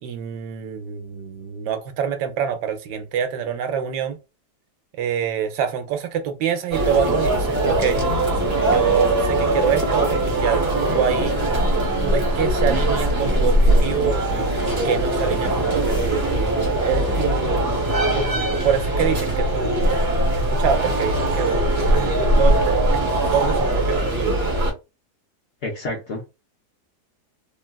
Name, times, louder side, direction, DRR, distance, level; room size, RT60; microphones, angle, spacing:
voice 1, 0.0-4.2 5.0-8.0 8.6-11.6 12.0-14.3 14.7-17.8 18.1-18.3 18.6-20.0 20.4-24.4, right 7 dB, 80° right, 1.2 m, -26 dB
sound 1, 6.7-24.7, right 1 dB, 40° right, 1.2 m, -21 dB
voice 2, 25.6-26.3, left 2 dB, 60° left, 0.8 m, -29 dB
3.5 x 2.3 x 2.2 m
omnidirectional pair, 1.8 m